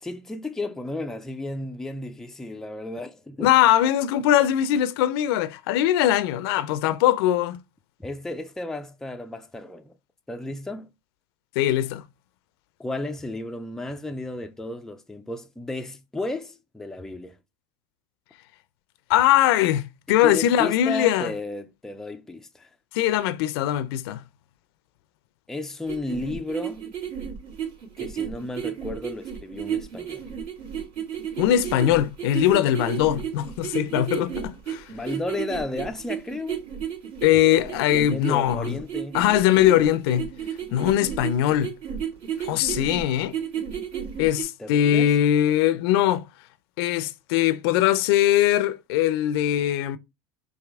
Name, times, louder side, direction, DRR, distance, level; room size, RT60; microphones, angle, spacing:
voice 1, 0.0-3.5 8.0-9.9 10.3-10.9 12.8-17.4 20.1-22.7 25.5-26.9 28.0-30.3 34.9-36.6 37.9-39.2 44.6-45.1, left 2 dB, 5° left, 0.4 m, -33 dB
voice 2, 3.4-7.6 11.6-12.0 19.1-21.3 22.9-24.2 31.4-34.8 37.2-38.7 39.1-40.3 40.7-41.7 42.4-43.4 44.2-46.3 46.8-50.0, left 12 dB, 75° left, 0.5 m, -21 dB
sound 1, 25.9-44.4, right 9 dB, 60° right, 2.4 m, -32 dB
4.8 x 2.7 x 3.5 m
supercardioid pair, 125°, 13 cm